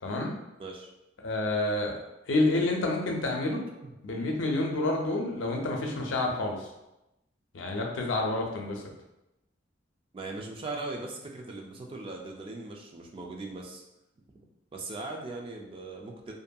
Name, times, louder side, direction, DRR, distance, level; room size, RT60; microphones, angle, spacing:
voice 1, 0.0-0.3 1.2-1.9 2.3-3.6 4.0-6.7 7.5-8.8, left 2 dB, 80° left, 1 dB, 0.5 m, -28 dB
voice 2, 3.8-4.3 10.1-13.8 14.3-14.4 14.7-16.3, right 2 dB, 30° right, 1 dB, 0.3 m, -39 dB
2.7 x 2.5 x 2.2 m, 0.92 s
head